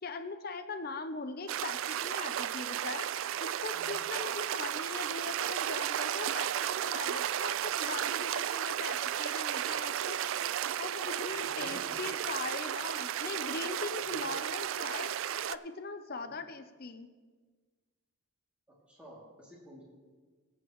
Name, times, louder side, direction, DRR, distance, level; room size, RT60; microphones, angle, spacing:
voice 1, 0.0-3.1 3.4-10.2 10.8-15.1 15.5-17.1, left 3 dB, 45° left, 9 dB, 0.6 m, -41 dB
sound 1, 1.5-15.5, right 10 dB, 65° right, 0.3 m, -34 dB
voice 2, 11.4-12.1 14.0-14.3 16.2-16.4 18.7-19.8, equal, 5° right, -6 dB, 2.7 m, -51 dB
22.5 x 8.3 x 3.1 m, 1.4 s
head